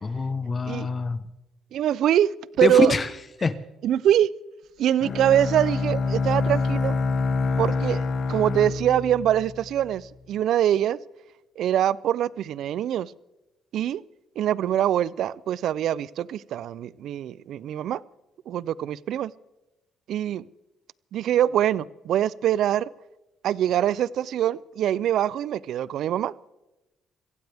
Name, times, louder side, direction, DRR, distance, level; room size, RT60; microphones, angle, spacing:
voice 1, 0.0-1.2 2.6-3.1 3.4-3.6, left 4 dB, 35° left, 1.1 m, -24 dB
voice 2, 1.7-2.3 2.6-2.9 3.8-4.3 4.8-7.0 7.6-8.0 8.3-11.0 11.6-13.1 13.7-14.0 14.4-18.0 18.5-19.3 20.1-20.4 21.1-22.9 23.4-26.3, right 11 dB, 70° right, 0.5 m, -23 dB
Bowed string instrument, 5.0-10.0, left 4 dB, 50° left, 1.3 m, -26 dB
24.5 x 16.0 x 3.5 m
cardioid pair, 90°, 0 cm